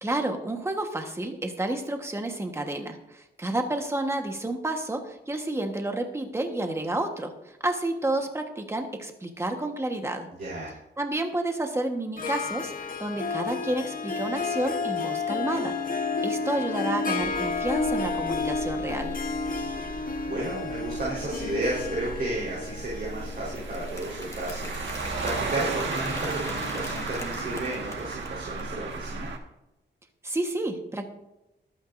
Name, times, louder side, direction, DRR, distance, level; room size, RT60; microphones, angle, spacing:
voice 1, 0.0-10.3 11.0-15.8 16.2-19.1 30.2-31.0, right 1 dB, 15° right, 4 dB, 1.3 m, -30 dB
voice 2, 10.4-10.7 19.8-29.3, right 2 dB, 55° right, -6 dB, 4.1 m, -33 dB
Harp, 12.2-25.7, left 4 dB, 50° left, 1.1 m, -31 dB
sound 1, 17.2-29.4, right 3 dB, 85° right, 1.6 m, -36 dB
Applause, 22.9-28.7, left 2 dB, 15° left, 1.8 m, -41 dB
23.5 x 8.9 x 2.6 m, 0.93 s
wide cardioid pair, 165°, 19 cm